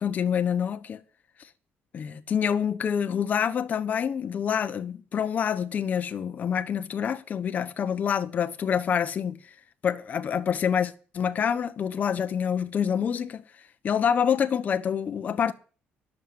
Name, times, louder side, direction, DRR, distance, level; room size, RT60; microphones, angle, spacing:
voice 1, 0.0-1.0 1.9-9.4 9.8-13.4 13.8-15.5, left 8 dB, 45° left, 1.0 m, -27 dB
11.0 x 7.2 x 8.1 m
cardioid pair, 120°, 4 cm